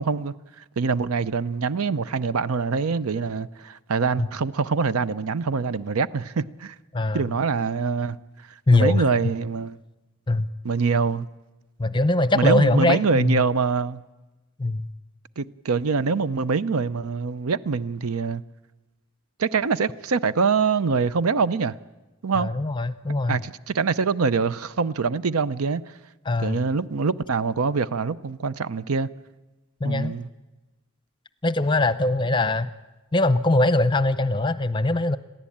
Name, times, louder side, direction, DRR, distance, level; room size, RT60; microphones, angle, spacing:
voice 1, 0.0-6.7 7.1-8.2 8.7-9.8 10.6-11.3 12.3-14.0 15.4-18.4 19.4-21.7 22.2-22.5 23.3-25.9 26.4-29.1 29.8-30.3, right 5 dB, 90° right, 0.6 m, -24 dB
voice 2, 6.9-7.2 8.7-9.0 10.3-10.5 11.8-13.4 14.6-14.9 22.3-23.4 26.3-26.6 29.8-30.1 31.4-32.7 33.1-35.2, left 2 dB, 20° left, 0.7 m, -21 dB
22.0 x 15.0 x 8.6 m
head